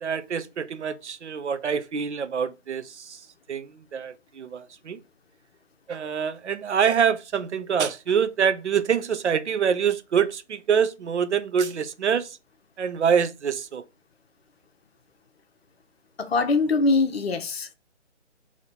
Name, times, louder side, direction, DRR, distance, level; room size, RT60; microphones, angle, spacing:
voice 1, 0.0-3.2 3.5-5.0 5.9-12.4 12.8-13.8, right 7 dB, 70° right, 0.6 m, -25 dB
voice 2, 16.2-17.7, left 3 dB, 60° left, 0.8 m, -23 dB
4.0 x 2.9 x 4.1 m
figure-of-eight pair, 145°, 36 cm